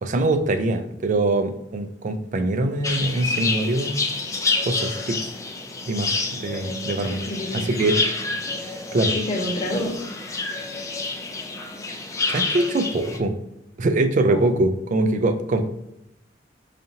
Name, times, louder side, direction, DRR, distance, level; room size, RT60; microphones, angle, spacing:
voice 1, 0.0-4.0 4.6-5.2 5.9-7.2 7.7-8.0 8.6-9.1 12.3-13.3 13.8-15.7, right 2 dB, 45° right, 8 dB, 0.4 m, -23 dB
sound 1, 2.8-13.2, left 3 dB, 20° left, 0.4 m, -28 dB
voice 2, 6.5-7.7 8.4-8.5 9.1-9.9 14.3-14.5, left 1 dB, 35° left, 0 dB, 0.9 m, -29 dB
4.9 x 2.7 x 2.7 m, 0.83 s
head